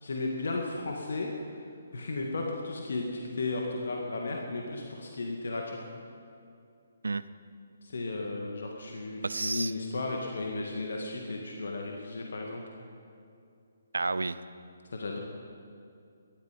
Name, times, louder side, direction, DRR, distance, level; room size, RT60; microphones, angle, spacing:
voice 1, 0.0-1.3 1.9-5.8 7.8-12.7 14.9-15.2, left 2 dB, 60° left, 1 dB, 1.9 m, -34 dB
voice 2, 9.2-9.7 13.9-14.4, right 3 dB, 70° right, 15 dB, 0.7 m, -30 dB
19.0 x 12.5 x 5.3 m, 2.5 s
figure-of-eight pair, 140°, 0 cm